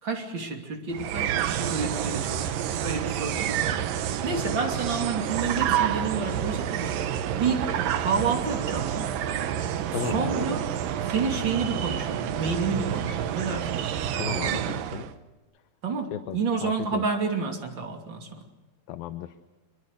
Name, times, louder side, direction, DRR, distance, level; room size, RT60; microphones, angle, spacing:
voice 1, 0.0-2.5 2.8-3.8 4.2-9.2 10.0-10.6 11.0-13.8 15.8-18.5, right 5 dB, 30° right, 3 dB, 3.1 m, -30 dB
sound 1, 0.9-15.1, right 10 dB, 70° right, 2.6 m, -29 dB
voice 2, 9.9-10.6 14.2-15.1 16.1-17.0 18.9-19.4, left 12 dB, 75° left, 10 dB, 2.6 m, -35 dB
27.0 x 23.0 x 6.8 m, 1.1 s
omnidirectional pair, 4.5 m